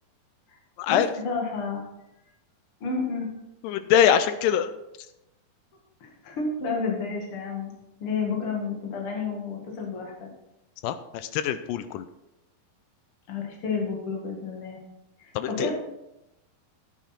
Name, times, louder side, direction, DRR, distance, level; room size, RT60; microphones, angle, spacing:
voice 1, 0.9-1.9 2.8-3.3 6.0-7.7 8.0-10.3 13.3-14.8 15.2-15.7, left 4 dB, 45° left, 0 dB, 2.4 m, -30 dB
voice 2, 3.6-4.7 10.8-12.1 15.4-15.7, left 9 dB, 80° left, 12 dB, 2.0 m, -23 dB
10.0 x 8.3 x 4.4 m, 0.89 s
omnidirectional pair, 4.2 m